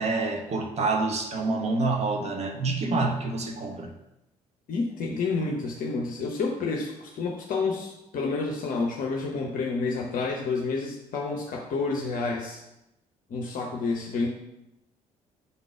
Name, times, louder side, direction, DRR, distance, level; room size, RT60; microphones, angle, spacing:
voice 1, 0.0-3.9, right 3 dB, 35° right, 4 dB, 0.8 m, -27 dB
voice 2, 4.7-12.6 13.3-14.3, left 4 dB, 45° left, 0 dB, 0.8 m, -29 dB
5.5 x 3.8 x 4.7 m, 0.90 s
figure-of-eight pair, 45°, 19 cm